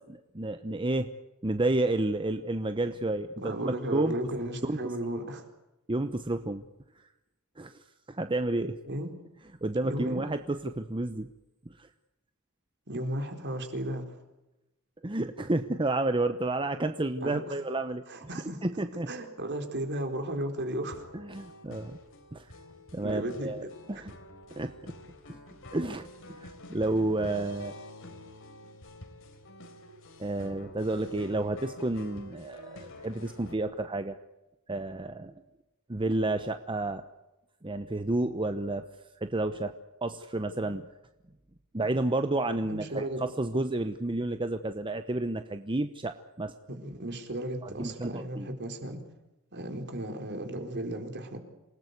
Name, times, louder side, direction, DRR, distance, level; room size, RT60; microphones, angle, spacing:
voice 1, 0.1-1.1 1.4-4.2 4.6-4.9 5.9-6.7 7.6-8.8 9.6-11.3 11.7-11.9 15.0-18.3 18.6-19.1 21.1-22.0 22.3-22.5 22.9-24.1 24.6-24.9 25.7-27.7 30.2-34.2 34.7-35.3 35.9-37.0 37.6-38.9 39.2-39.7 40.0-40.9 41.7-46.5 47.6-48.5, right 2 dB, 25° right, 9 dB, 1.0 m, -31 dB
voice 2, 3.4-5.5 8.9-9.1 9.8-10.2 12.9-14.2 17.2-17.4 18.1-18.6 19.1-21.0 23.0-24.1 42.6-43.2 46.7-49.0 49.5-51.4, right 1 dB, 55° right, 5 dB, 4.2 m, -35 dB
sound 1, 20.9-33.5, left 1 dB, 65° left, 4.0 m, -48 dB
27.5 x 18.5 x 8.2 m, 0.97 s
head